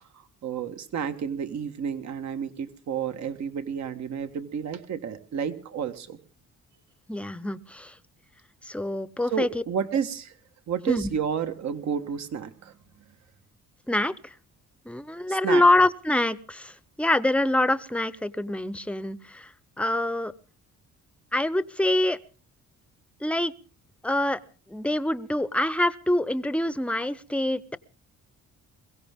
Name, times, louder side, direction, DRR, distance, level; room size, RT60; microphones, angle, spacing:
voice 1, 0.0-6.2 9.3-10.3 10.7-12.8 15.3-15.6, right 7 dB, 65° right, 9 dB, 1.6 m, -31 dB
voice 2, 7.1-8.0 8.6-9.6 10.9-11.1 13.9-14.3 14.9-19.5 19.8-20.3 21.3-22.2 23.2-23.5 24.0-24.4 24.7-27.8, left 1 dB, 5° left, 17 dB, 0.8 m, -25 dB
22.5 x 16.5 x 3.6 m, 0.37 s
cardioid pair, 90°, 30 cm